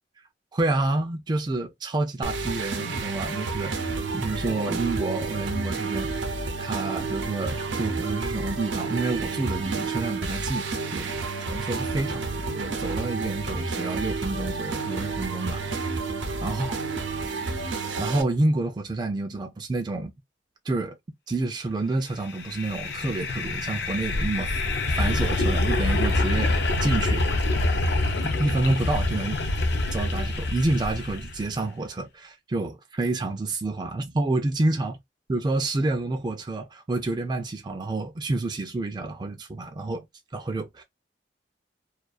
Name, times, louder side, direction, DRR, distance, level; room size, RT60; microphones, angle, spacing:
voice 1, 0.5-6.3 6.6-11.1 11.4-15.6 16.4-16.8 18.0-20.1 20.7-21.0 21.3-24.6 24.9-26.5 26.8-27.3 28.2-29.4 29.9-35.0 35.3-40.0 40.3-40.8, right 2 dB, 25° right, 0.4 m, -28 dB
sound 1, 2.2-18.2, right 4 dB, 85° right, 0.6 m, -30 dB
sound 2, 22.3-31.5, left 2 dB, 65° left, 0.5 m, -26 dB
2.3 x 2.3 x 2.3 m
head